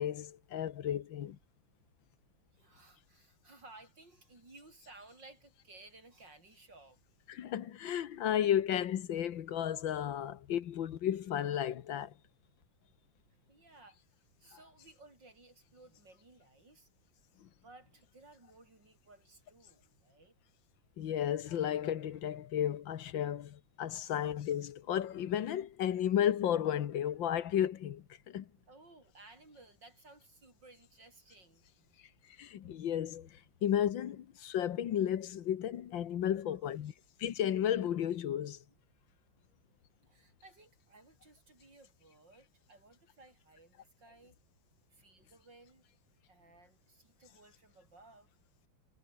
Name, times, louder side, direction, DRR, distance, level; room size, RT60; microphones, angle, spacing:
voice 1, 0.0-1.4 7.3-12.1 17.4-17.5 21.0-28.5 32.4-33.3 33.6-36.9 37.2-38.6, left 10 dB, 70° left, 1.8 m, -33 dB
voice 2, 2.5-7.0 13.5-16.9 17.6-20.4 24.0-24.1 28.7-32.0 36.4-37.0 40.1-44.4 44.9-45.9 46.3-48.3, right 2 dB, 60° right, 7.7 m, -59 dB
omnidirectional pair, 2.2 m